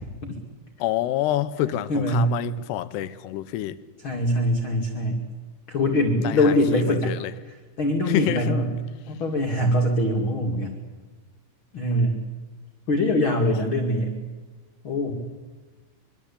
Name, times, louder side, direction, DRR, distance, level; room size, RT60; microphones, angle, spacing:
voice 1, 0.8-3.8 6.2-7.3 8.1-8.5, left 13 dB, 85° left, 14 dB, 3.1 m, -27 dB
voice 2, 1.9-2.3 4.0-5.2 5.7-7.1 7.4-8.7 9.1-10.7 11.7-12.2 12.9-14.2 14.8-15.1, left 1 dB, 35° left, 1 dB, 2.6 m, -23 dB
25.5 x 23.0 x 8.6 m, 1.3 s
omnidirectional pair, 4.7 m